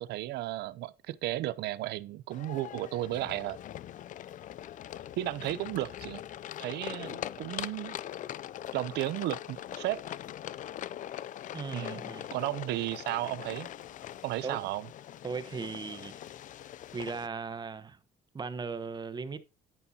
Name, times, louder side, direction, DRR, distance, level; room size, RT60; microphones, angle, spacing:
voice 1, 0.0-3.6 5.2-6.2 6.6-8.0 8.7-10.0 11.7-12.0 12.3-13.7 14.2-14.9, right 15 dB, 80° right, 0.6 m, -34 dB
sound 1, 2.3-17.3, left 11 dB, 50° left, 0.4 m, -42 dB
voice 2, 11.5-12.4 14.4-14.7 15.2-16.2 16.9-18.0 18.3-19.4, right 4 dB, 25° right, 1.0 m, -38 dB
9.9 x 9.7 x 2.8 m
cardioid pair, 110°, 17 cm